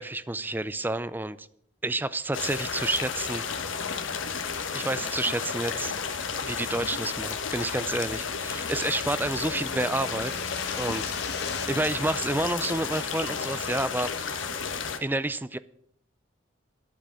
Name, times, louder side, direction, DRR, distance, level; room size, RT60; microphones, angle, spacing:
voice 1, 0.0-1.5 1.8-3.4 4.7-5.9 6.3-10.4 10.8-11.0 11.4-14.4 15.0-15.6, right 2 dB, 10° right, 15 dB, 0.4 m, -29 dB
sound 1, 2.3-15.0, left 6 dB, 85° left, 1.3 m, -32 dB
sound 2, 8.1-11.7, left 7 dB, 55° left, 1.3 m, -42 dB
11.5 x 8.4 x 7.5 m, 0.71 s
head